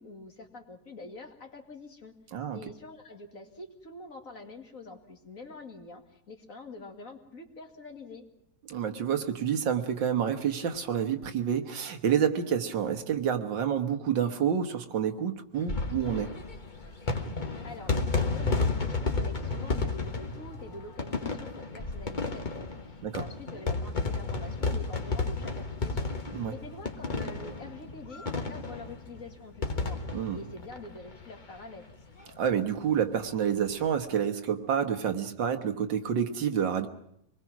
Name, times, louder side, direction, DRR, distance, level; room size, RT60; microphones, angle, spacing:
voice 1, 0.0-2.1 2.5-8.3 17.6-26.1 26.5-30.0 30.3-31.8, left 2 dB, 45° left, 4 dB, 2.3 m, -45 dB
voice 2, 8.7-16.3 23.0-23.2 26.3-26.5 30.1-30.4 32.4-36.9, right 8 dB, 85° right, 6 dB, 2.1 m, -28 dB
sound 1, 15.5-31.6 31.9-32.0 32.2-32.3 33.6-33.8, left 3 dB, 25° left, 1.4 m, -32 dB
25.5 x 20.5 x 6.1 m, 0.75 s
omnidirectional pair, 2.0 m